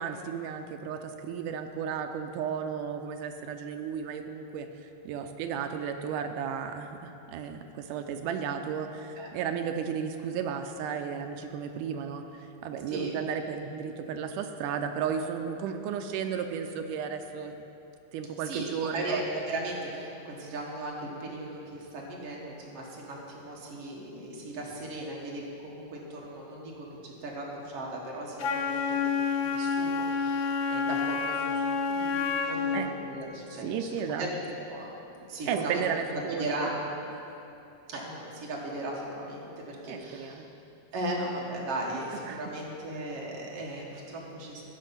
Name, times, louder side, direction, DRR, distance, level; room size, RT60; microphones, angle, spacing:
voice 1, 0.0-17.6 18.1-19.2 32.7-32.9 33.6-34.3 35.5-36.7 39.9-40.5 42.3-42.4, right 7 dB, 80° right, 7 dB, 2.0 m, -34 dB
voice 2, 12.9-13.2 18.4-29.0 29.4-33.9 34.2-34.4 34.7-35.8 36.1-36.8 37.9-40.5 40.9-44.6, right 1 dB, 55° right, -2 dB, 2.1 m, -37 dB
Wind instrument woodwind instrument, 28.4-32.9, left 5 dB, 80° left, 1.7 m, -29 dB
14.5 x 5.2 x 5.7 m, 2.9 s
omnidirectional pair, 3.9 m